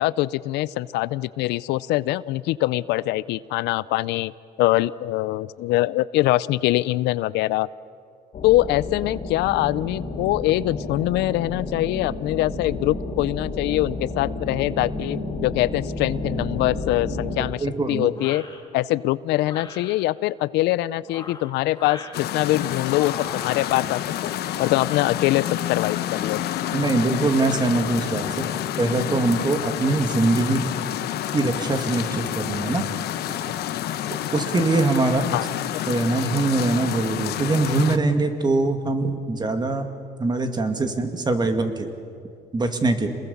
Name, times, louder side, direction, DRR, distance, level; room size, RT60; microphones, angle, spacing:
voice 1, 0.0-4.3 4.6-7.7 8.4-18.4 18.7-24.3 24.6-26.4 35.3-35.5 35.7-35.8, left 16 dB, 85° left, 19 dB, 0.5 m, -23 dB
sound 1, 8.3-17.4, left 2 dB, 55° left, 3.8 m, -31 dB
voice 2, 17.4-18.1 26.7-28.5 28.8-30.7 31.3-32.8 33.3-33.4 34.3-35.3 35.9-39.9 40.2-41.9 42.5-43.1, right 2 dB, 25° right, 7 dB, 2.2 m, -23 dB
sound 2, 18.1-18.6 19.4-20.0 21.0-22.2 22.9-24.0 24.5-25.0, left 4 dB, 25° left, 2.9 m, -40 dB
sound 3, 22.1-38.0, left 12 dB, 70° left, 1.1 m, -29 dB
27.5 x 21.0 x 7.2 m, 2.3 s
cardioid pair, 110°, 17 cm